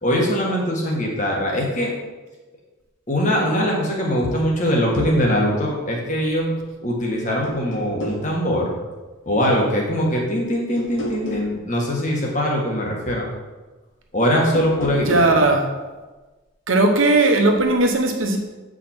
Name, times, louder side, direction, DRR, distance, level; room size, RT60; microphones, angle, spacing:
voice 1, 0.0-1.9 3.1-6.5 6.8-8.8 9.2-13.3 14.1-15.4, equal, 35° left, -2 dB, 1.5 m, -22 dB
sound 1, 4.9-5.2 6.7-7.1 7.4-8.3 10.8-11.5 14.4-15.4, left 1 dB, 70° left, 1.5 m, -31 dB
voice 2, 15.0-15.7 16.7-18.4, right 2 dB, 80° right, 3 dB, 1.1 m, -17 dB
8.7 x 5.1 x 4.4 m, 1.2 s
head